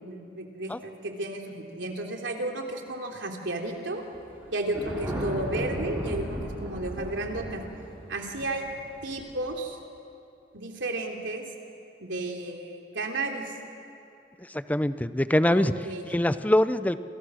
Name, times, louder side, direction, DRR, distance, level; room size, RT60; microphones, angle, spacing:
voice 1, 0.0-4.0 4.5-7.6 8.1-8.6 9.0-9.8 10.5-11.4 12.0-13.5 15.5-16.1, right 2 dB, 75° right, 2 dB, 3.3 m, -33 dB
Thunder, 4.1-9.5, equal, 15° right, 6.6 m, -35 dB
voice 2, 14.5-15.7 16.0-17.0, left 1 dB, 10° left, 12 dB, 0.6 m, -23 dB
29.0 x 28.0 x 6.4 m, 2.7 s
head